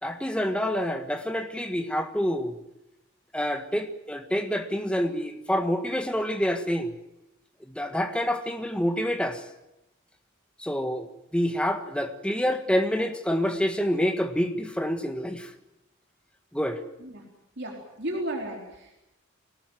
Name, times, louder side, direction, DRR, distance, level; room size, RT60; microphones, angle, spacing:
voice 1, 0.0-2.6 3.3-6.9 7.7-9.4 10.6-15.5 16.5-16.8, equal, 5° left, 6 dB, 1.6 m, -27 dB
voice 2, 17.6-18.9, right 1 dB, 55° right, 0 dB, 4.0 m, -34 dB
23.5 x 19.0 x 9.2 m, 0.92 s
head